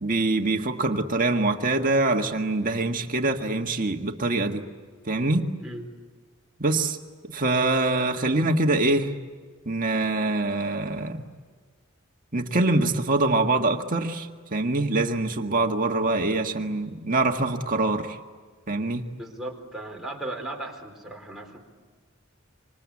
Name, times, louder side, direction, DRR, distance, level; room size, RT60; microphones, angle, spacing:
voice 1, 0.0-4.6 5.1-5.4 6.6-7.0 7.3-9.1 9.7-11.3 12.3-18.2 18.7-19.1, right 2 dB, 40° right, 4 dB, 1.7 m, -24 dB
voice 2, 19.1-21.6, right 1 dB, ahead, -1 dB, 4.3 m, -36 dB
26.5 x 26.0 x 8.6 m, 1.5 s
head